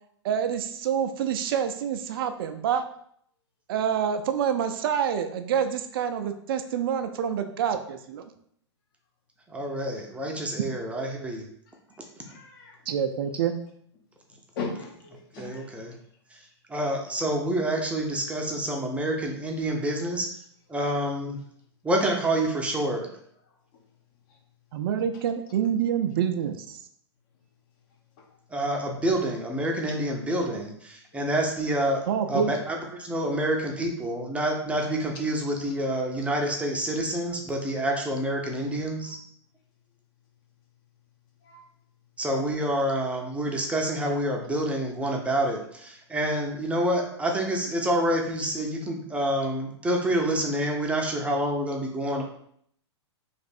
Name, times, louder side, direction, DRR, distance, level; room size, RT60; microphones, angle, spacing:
voice 1, 0.2-2.8 3.7-8.3 12.9-13.5 24.7-26.8 32.1-32.5 38.7-38.8, right 8 dB, 50° right, 8 dB, 0.4 m, -27 dB
voice 2, 9.5-11.5 15.4-16.0 16.3-20.3 20.7-21.4 21.8-23.1 28.5-39.2 42.2-52.2, right 1 dB, 10° right, 0 dB, 0.6 m, -28 dB
voice 3, 12.2-12.8 14.5-15.6 41.4-41.6, left 4 dB, 50° left, 2 dB, 1.0 m, -37 dB
3.3 x 2.5 x 4.2 m, 0.66 s
hypercardioid pair, 110°, 15 cm